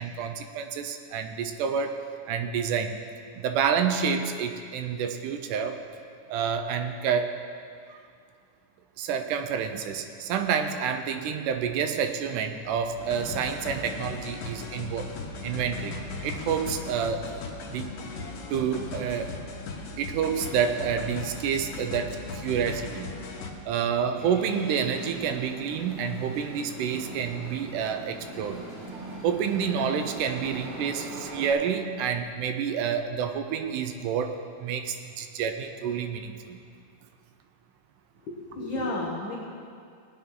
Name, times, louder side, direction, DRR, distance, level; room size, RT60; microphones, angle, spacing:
voice 1, 0.0-2.0 2.3-3.0 3.4-5.8 6.3-7.3 7.9-8.0 9.0-15.1 15.4-17.9 18.5-19.3 20.0-23.1 23.7-28.7 29.2-36.6, right 7 dB, 80° right, 7 dB, 2.2 m, -29 dB
sound 1, 13.0-23.5, left 4 dB, 80° left, 2.7 m, -38 dB
sound 2, 24.2-31.5, right 1 dB, 55° right, 4.2 m, -41 dB
voice 2, 38.3-39.3, left 2 dB, 55° left, -5 dB, 1.4 m, -32 dB
18.5 x 9.3 x 3.8 m, 2.3 s
omnidirectional pair, 3.7 m